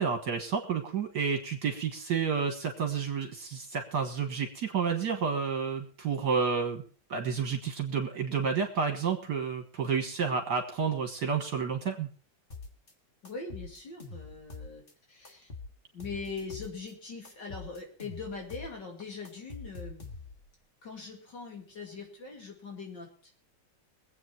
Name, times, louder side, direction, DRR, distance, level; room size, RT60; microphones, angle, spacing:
voice 1, 0.0-6.8 7.1-12.1, right 6 dB, 60° right, 5 dB, 2.0 m, -30 dB
sound 1, 12.5-12.9 13.3-14.9 15.3-16.9 17.3-18.8 19.0-20.5, left 4 dB, 30° left, 1.8 m, -45 dB
voice 2, 13.2-14.8 15.1-15.5 15.9-20.1 20.8-23.3, left 4 dB, 70° left, 0 dB, 3.3 m, -41 dB
22.5 x 8.4 x 4.5 m, 0.39 s
omnidirectional pair, 2.0 m